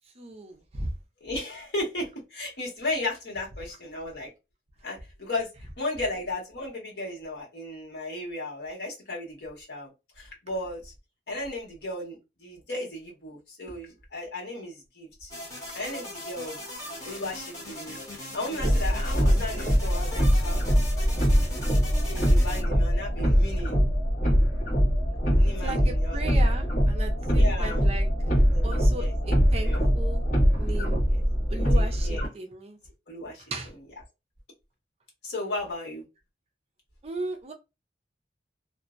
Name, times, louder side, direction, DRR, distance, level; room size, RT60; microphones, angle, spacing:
voice 1, 0.2-0.9 25.6-28.1 28.6-30.2 30.6-31.0 31.5-32.8 33.5-33.7 37.0-37.5, right 2 dB, 35° right, 0.5 m, -36 dB
voice 2, 1.2-4.3 4.8-5.5 5.8-9.9 10.2-10.9 11.3-15.3 15.7-16.6 17.0-18.0 18.3-20.9 21.4-21.5 22.1-23.8 25.3-26.2 27.3-27.8 28.5-28.6 29.0-29.1 29.6-29.8 31.1-31.2 31.7-32.3 33.1-33.4 35.2-36.0, left 2 dB, 70° left, 1.2 m, -35 dB
sound 1, 15.3-22.6, left 1 dB, 15° left, 1.0 m, -40 dB
sound 2, 18.6-32.3, equal, 45° left, 1.2 m, -23 dB
2.5 x 2.0 x 2.4 m
head